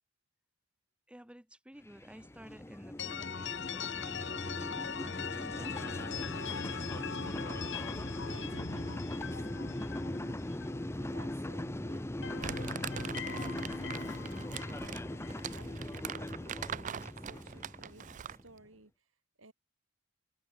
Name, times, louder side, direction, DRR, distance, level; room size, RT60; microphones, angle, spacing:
voice 1, 1.1-6.1 7.3-7.5, equal, 5° right, 1.2 m, -53 dB
sound 1, 1.8-18.5, left 1 dB, 15° left, 0.7 m, -40 dB
sound 2, 3.0-11.7 12.0-16.1, left 6 dB, 65° left, 1.5 m, -42 dB
voice 2, 5.5-6.1 7.1-7.6 8.2-14.5 15.1-18.9 19.4-19.5, right 2 dB, 80° right, 4.7 m, -57 dB
Crumpling crinkling, 12.4-18.5, right 8 dB, 40° right, 0.4 m, -42 dB
head